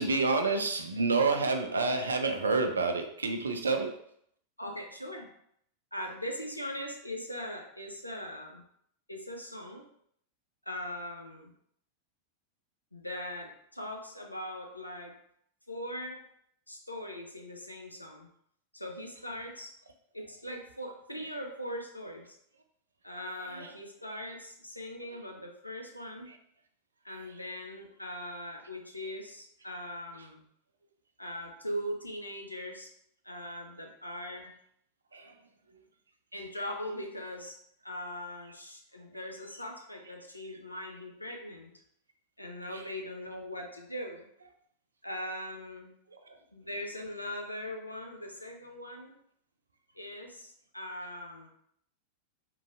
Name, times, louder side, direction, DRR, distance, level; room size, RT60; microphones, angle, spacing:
voice 1, 0.0-3.9 23.4-23.7 25.1-25.2 26.3-26.4 35.1-35.4 35.7-35.8 42.7-42.9 46.1-46.4, right 3 dB, 75° right, 6 dB, 0.3 m, -29 dB
voice 2, 4.6-5.3 5.9-8.6 9.1-9.8 10.7-11.5 12.9-15.1 15.7-16.2 16.7-18.3 18.7-19.7 20.1-22.4 23.0-26.3 27.0-30.4 31.2-32.9 33.2-34.5 36.3-37.6 37.8-41.7 42.4-44.3 45.0-45.9 46.5-49.2 49.9-51.5, left 1 dB, 85° left, 2 dB, 0.4 m, -40 dB
3.0 x 2.6 x 2.4 m, 0.70 s
figure-of-eight pair, 90°, 0 cm